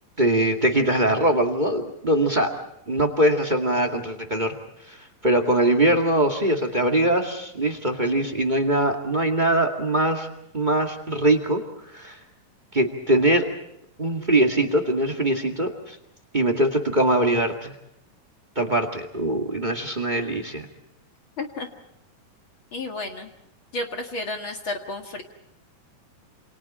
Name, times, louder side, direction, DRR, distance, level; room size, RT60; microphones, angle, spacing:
voice 1, 0.2-2.5 2.9-4.5 4.9-5.0 5.2-10.3 10.5-11.6 11.9-12.2 12.7-13.5 14.0-15.9 16.3-17.7 18.5-20.6, right 1 dB, 20° right, 6 dB, 1.2 m, -22 dB
voice 2, 21.4-21.7 22.7-23.3 23.7-25.2, left 2 dB, 40° left, 4 dB, 2.1 m, -31 dB
28.5 x 27.5 x 4.3 m, 0.76 s
omnidirectional pair, 4.3 m